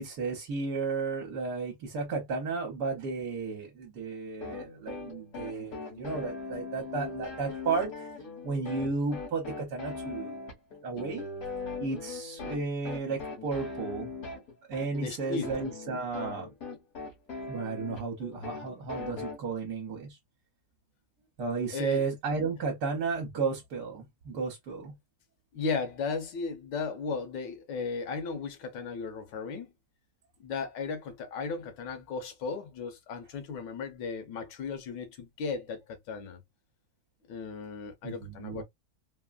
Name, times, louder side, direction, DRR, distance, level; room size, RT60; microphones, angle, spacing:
voice 1, 0.0-8.1 8.4-10.4 10.8-11.3 11.8-14.1 14.7-16.5 17.5-20.2 21.4-24.9 38.0-38.6, right 4 dB, 70° right, 1.4 m, -33 dB
sound 1, 4.4-19.4, left 3 dB, 55° left, 1.8 m, -40 dB
voice 2, 15.0-15.5 21.7-22.0 25.5-29.7 30.4-36.4 37.3-38.6, left 4 dB, 90° left, 1.5 m, -35 dB
3.5 x 2.1 x 2.3 m
omnidirectional pair, 1.9 m